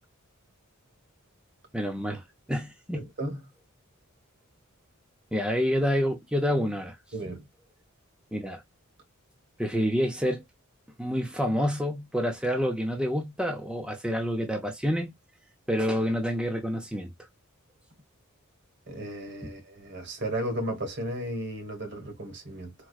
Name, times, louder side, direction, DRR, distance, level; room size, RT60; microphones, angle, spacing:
voice 1, 1.7-2.2 2.5-3.1 5.3-7.0 8.3-8.6 9.6-10.4 11.0-15.1 15.7-17.1, equal, 5° right, 0.6 m, -28 dB
voice 2, 2.9-3.4 7.1-7.5 18.9-22.7, right 1 dB, 55° right, 1.4 m, -34 dB
4.5 x 2.3 x 2.3 m
head